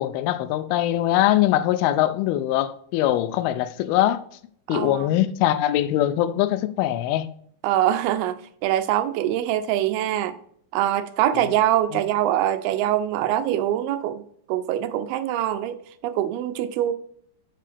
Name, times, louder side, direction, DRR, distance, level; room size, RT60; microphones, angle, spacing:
voice 1, 0.0-4.2 4.7-7.3 11.4-11.5 11.9-12.0, left 13 dB, 85° left, 2.4 m, -22 dB
voice 2, 4.7-5.1 7.6-10.4 10.7-14.2 14.5-15.8 16.0-16.9, right 12 dB, 85° right, 2.5 m, -23 dB
7.5 x 5.8 x 3.4 m
omnidirectional pair, 4.4 m